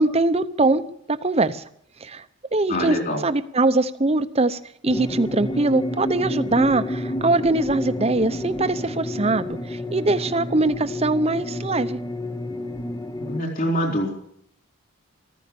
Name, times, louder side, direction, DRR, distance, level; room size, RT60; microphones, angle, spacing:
voice 1, 0.0-1.6 2.0-2.2 2.5-12.0, right 2 dB, 30° right, 12 dB, 0.8 m, -22 dB
voice 2, 2.7-3.2 13.2-14.1, equal, 40° left, 1 dB, 3.9 m, -25 dB
sound 1, 4.9-13.4, left 1 dB, 15° left, 0.8 m, -30 dB
14.5 x 14.5 x 7.0 m, 0.67 s
head